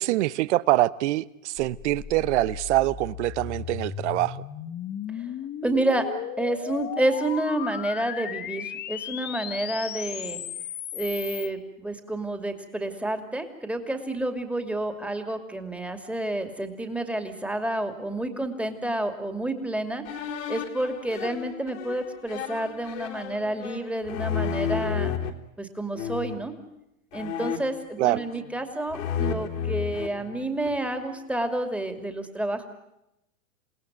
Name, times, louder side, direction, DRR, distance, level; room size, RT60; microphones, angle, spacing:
voice 1, 0.0-4.4 28.0-28.2, right 16 dB, 55° right, 1.0 m, -24 dB
sound 1, 1.6-11.5, left 10 dB, 25° left, 1.2 m, -36 dB
voice 2, 5.6-6.1 6.4-10.4 10.9-20.0 20.5-25.1 25.6-26.5 27.1-32.7, right 1 dB, 5° right, 2.7 m, -29 dB
sound 2, 20.1-25.3 26.0-26.5 27.1-28.6 28.9-30.9, left 7 dB, 70° left, 3.4 m, -32 dB
29.0 x 17.5 x 9.3 m
hypercardioid pair, 120°, 41 cm